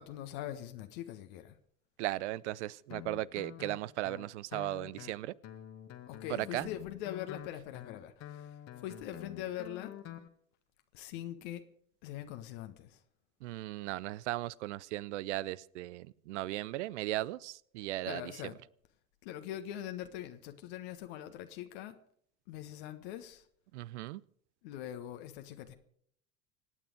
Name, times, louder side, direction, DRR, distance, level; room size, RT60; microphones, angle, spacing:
voice 1, 0.0-1.6 6.1-9.9 10.9-11.6 12.0-13.0 18.0-18.6 19.2-22.0 22.5-23.5 24.6-25.7, left 12 dB, 55° left, 1.4 m, -42 dB
voice 2, 2.0-5.3 6.3-6.7 13.4-18.2 23.7-24.2, right 16 dB, 60° right, 0.6 m, -37 dB
Guitar, 2.9-10.3, left 11 dB, 40° left, 1.7 m, -48 dB
25.5 x 9.1 x 5.1 m
figure-of-eight pair, 75°, 39 cm